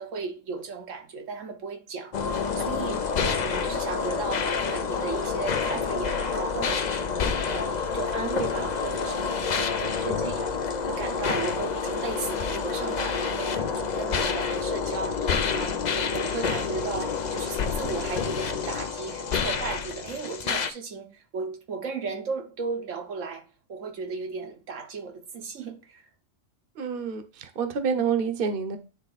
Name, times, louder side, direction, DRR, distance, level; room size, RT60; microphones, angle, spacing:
voice 1, 0.0-26.1, right 4 dB, 85° right, 1.4 m, -35 dB
sound 1, 2.1-20.7, left 5 dB, 50° left, 0.6 m, -28 dB
voice 2, 26.8-28.8, right 6 dB, 50° right, 1.0 m, -28 dB
9.8 x 3.4 x 4.0 m
omnidirectional pair, 1.3 m